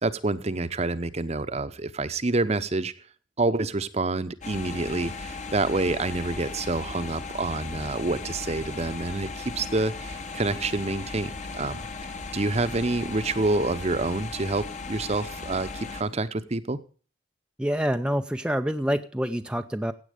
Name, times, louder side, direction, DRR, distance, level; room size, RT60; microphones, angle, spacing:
voice 1, 0.0-2.9 3.4-11.8 12.3-16.8, right 2 dB, 35° right, 13 dB, 0.8 m, -27 dB
sound 1, 4.4-16.0, left 4 dB, 40° left, 1.2 m, -37 dB
voice 2, 17.6-19.9, equal, 5° right, 7 dB, 0.5 m, -27 dB
16.0 x 8.5 x 5.1 m, 0.40 s
head